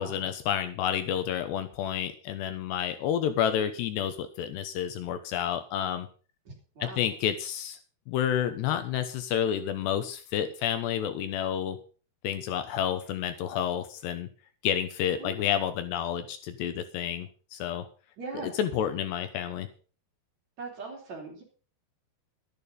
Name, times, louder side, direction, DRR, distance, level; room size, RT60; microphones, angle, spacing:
voice 1, 0.0-6.1 6.8-7.8 8.1-11.8 12.2-14.3 14.6-17.9 18.4-19.7, left 9 dB, 75° left, 10 dB, 3.0 m, -30 dB
voice 2, 6.5-7.1 15.1-15.3 18.2-18.5 20.6-21.4, right 4 dB, 40° right, -1 dB, 5.0 m, -40 dB
12.5 x 11.0 x 5.5 m, 0.38 s
omnidirectional pair, 5.3 m